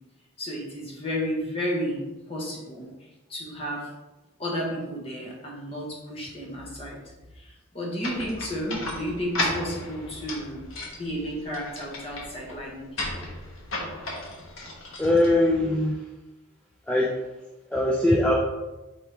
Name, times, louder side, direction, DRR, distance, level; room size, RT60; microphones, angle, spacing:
voice 1, 0.4-2.0 2.3-2.9 3.3-3.9 4.4-7.0 7.3-10.7 10.9-12.9 13.2-13.3, equal, 25° left, -3 dB, 1.0 m, -32 dB
sound 1, 8.0-15.8, left 2 dB, 75° left, 1.0 m, -35 dB
voice 2, 15.0-16.0 16.9-17.1 17.7-18.3, left 1 dB, 5° left, -5 dB, 0.3 m, -21 dB
4.7 x 3.5 x 2.9 m, 1.1 s
head